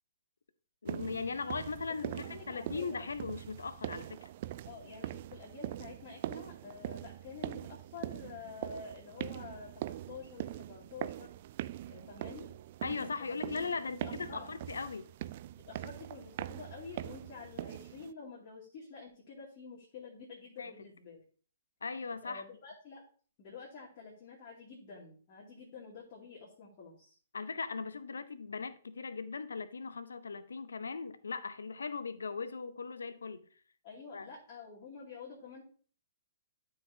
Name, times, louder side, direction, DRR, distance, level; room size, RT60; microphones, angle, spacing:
voice 1, 0.8-2.1 2.5-4.3 12.8-15.1 20.6-20.7 21.8-22.4 27.3-33.4 34.1-34.3, left 4 dB, 75° left, 0.7 m, -39 dB
sound 1, 0.9-18.1, right 13 dB, 45° right, 0.3 m, -42 dB
voice 2, 2.0-3.0 4.6-11.3 11.9-12.5 12.9-13.4 13.8-14.5 15.6-21.2 22.2-23.0 23.4-27.2 33.8-35.6, left 5 dB, 40° left, 2.6 m, -49 dB
12.5 x 4.8 x 2.8 m
figure-of-eight pair, 120°, 0 cm